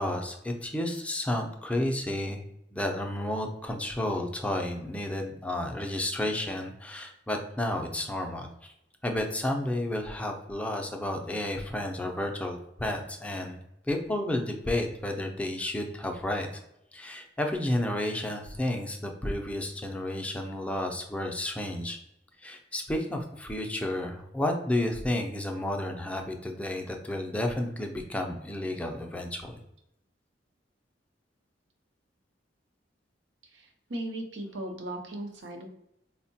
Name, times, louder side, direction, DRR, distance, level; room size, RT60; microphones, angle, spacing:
voice 1, 0.0-2.4 2.7-8.7 9.0-13.6 13.9-16.5 16.9-22.0 22.4-29.6, left 1 dB, 5° left, 2 dB, 0.4 m, -31 dB
voice 2, 33.4-35.7, right 1 dB, 80° right, 3 dB, 0.7 m, -37 dB
4.4 x 2.1 x 2.7 m, 0.82 s
head